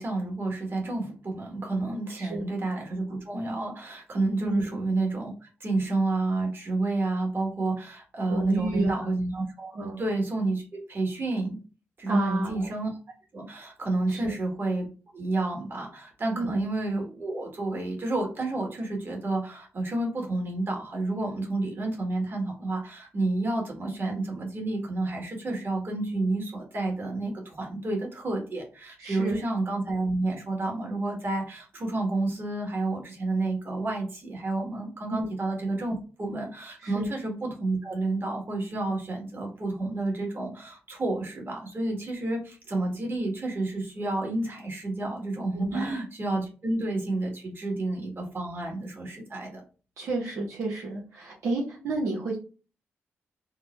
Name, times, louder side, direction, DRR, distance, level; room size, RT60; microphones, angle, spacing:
voice 1, 0.0-11.6 12.0-12.9 13.3-14.9 15.1-49.6, right 2 dB, 50° right, 1 dB, 1.5 m, -30 dB
voice 2, 2.2-2.5 4.4-4.6 8.3-9.1 9.7-10.0 12.1-12.7 14.1-14.3 16.3-16.6 29.0-29.4 35.1-35.3 36.8-37.1 45.5-45.9 50.0-52.4, right 2 dB, 80° right, -3 dB, 0.8 m, -31 dB
3.6 x 2.0 x 3.0 m, 0.36 s
supercardioid pair, 50°, 5 cm